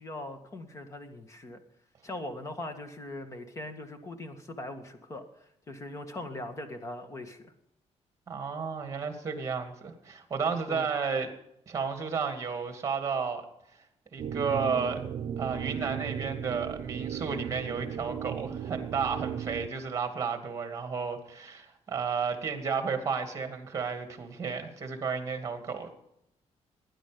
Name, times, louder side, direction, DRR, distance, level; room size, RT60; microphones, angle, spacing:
voice 1, 0.0-1.6 2.0-5.2 5.7-7.5 10.7-10.9, left 1 dB, 25° left, 7 dB, 1.9 m, -40 dB
voice 2, 8.3-11.3 11.7-13.4 14.1-15.0 15.4-25.9, right 5 dB, 25° right, 6 dB, 2.5 m, -32 dB
sound 1, 14.2-19.7, right 8 dB, 50° right, 0.8 m, -36 dB
19.0 x 10.0 x 5.3 m, 0.80 s
cardioid pair, 160°, 12 cm